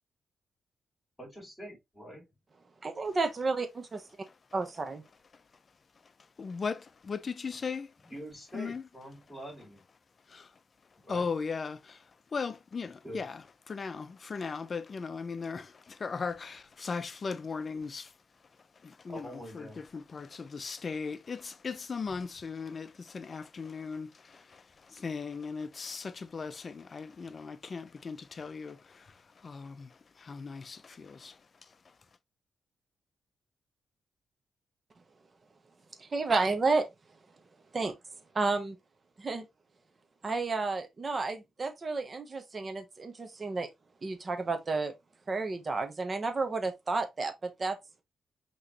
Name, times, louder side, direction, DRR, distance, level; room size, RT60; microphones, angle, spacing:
voice 1, 1.2-2.3 8.0-9.8 11.0-11.3 13.0-13.2 19.1-19.8, equal, 10° left, 2.3 m, -45 dB
voice 2, 2.8-4.0 4.5-5.0 36.0-36.9 37.7-37.9 38.3-38.8 39.2-39.4 40.2-43.7 44.0-44.9 45.3-47.8, right 3 dB, 30° right, 0.9 m, -31 dB
voice 3, 6.4-7.9 8.5-8.8 10.3-10.5 11.1-12.0 12.3-13.4 13.7-18.1 18.8-19.3 19.5-24.6 24.9-29.1 29.4-29.9 30.2-31.3, left 5 dB, 35° left, 0.5 m, -37 dB
5.6 x 3.0 x 2.9 m
cardioid pair, 125°, 0 cm